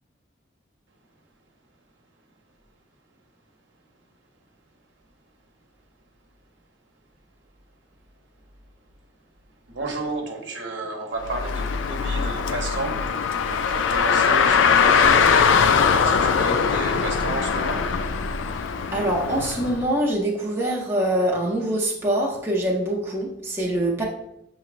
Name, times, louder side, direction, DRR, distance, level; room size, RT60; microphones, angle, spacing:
voice 1, 9.7-18.0, right 2 dB, 65° right, 1 dB, 0.9 m, -32 dB
Car, 11.2-19.8, left 6 dB, 75° left, 0.3 m, -21 dB
voice 2, 18.9-24.0, right 1 dB, 10° right, -4 dB, 0.5 m, -24 dB
6.9 x 3.1 x 2.5 m, 0.84 s
head